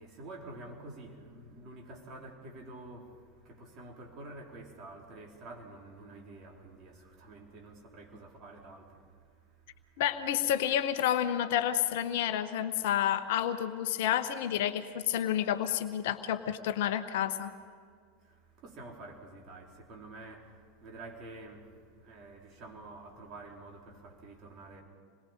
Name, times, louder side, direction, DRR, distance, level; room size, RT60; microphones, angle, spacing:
voice 1, 0.0-10.0 18.2-24.8, right 2 dB, 35° right, 4.3 m, -49 dB
voice 2, 10.0-17.5, left 10 dB, 55° left, 1.0 m, -30 dB
27.5 x 21.5 x 5.4 m
figure-of-eight pair, 85°, 0 cm